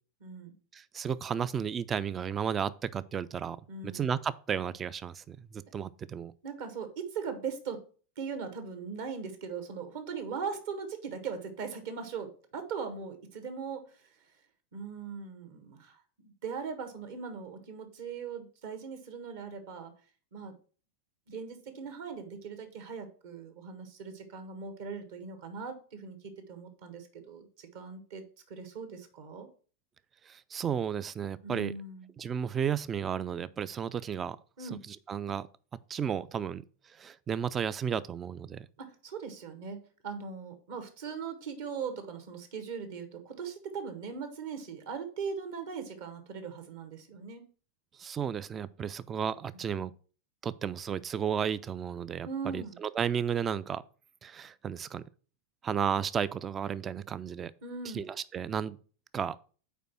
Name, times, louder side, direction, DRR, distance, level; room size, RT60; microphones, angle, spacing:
voice 1, 0.2-0.5 3.7-4.1 6.4-7.8 8.2-14.1 14.7-19.9 20.3-20.5 21.3-26.2 26.5-29.5 31.4-32.1 34.6-34.8 38.8-47.4 52.2-52.8 57.6-58.1, right 5 dB, 50° right, 1.3 m, -40 dB
voice 2, 0.7-3.6 3.8-6.3 30.3-31.7 32.2-34.4 34.7-35.5 35.9-36.6 37.0-38.7 48.0-49.9 50.4-53.8 54.2-55.0 55.6-57.5 57.9-58.8 59.1-59.4, right 7 dB, 20° right, 0.3 m, -33 dB
5.1 x 4.6 x 5.7 m
figure-of-eight pair, 90°, 0 cm